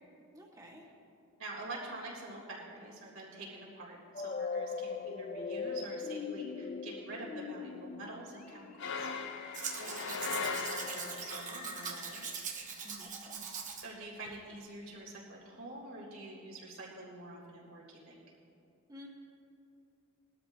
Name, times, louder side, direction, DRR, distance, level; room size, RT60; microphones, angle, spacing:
voice 1, 0.3-0.9 12.8-13.5 18.9-19.1, left 1 dB, 15° right, -2 dB, 1.8 m, -52 dB
voice 2, 1.4-9.2 9.8-12.2 13.8-18.2, right 2 dB, 75° right, -4 dB, 3.5 m, -46 dB
sound 1, 4.1-13.1, left 5 dB, 35° left, 0.4 m, -42 dB
sound 2, 8.8-11.4, left 5 dB, 55° left, 0.8 m, -38 dB
Domestic sounds home sounds, 9.5-13.9 14.3-14.4, right 6 dB, 35° right, 1.1 m, -41 dB
21.0 x 13.0 x 2.9 m, 2.6 s
head